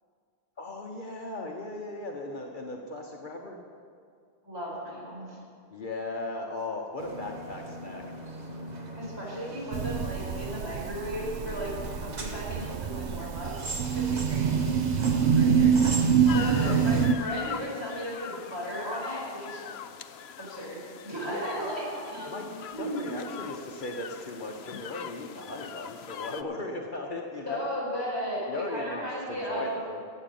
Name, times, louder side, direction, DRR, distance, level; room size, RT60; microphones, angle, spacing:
voice 1, 0.6-3.6 5.7-8.0 16.3-16.8 21.2-21.4 22.3-22.5 22.8-27.7 28.5-30.0, left 2 dB, 50° left, 1 dB, 1.1 m, -37 dB
voice 2, 4.4-5.4 8.9-11.7 12.0-13.6 13.9-14.7 15.0-15.7 16.2-19.6 20.4-22.3 22.7-23.1 27.5-29.8, equal, 25° right, -5 dB, 4.6 m, -35 dB
sound 1, 7.0-17.1, right 2 dB, 40° right, 1.2 m, -40 dB
sound 2, 9.7-17.1, right 7 dB, 65° right, 0.8 m, -26 dB
sound 3, 16.3-26.4, left 8 dB, 75° left, 0.8 m, -41 dB
13.5 x 8.5 x 7.5 m, 2.3 s
omnidirectional pair, 1.1 m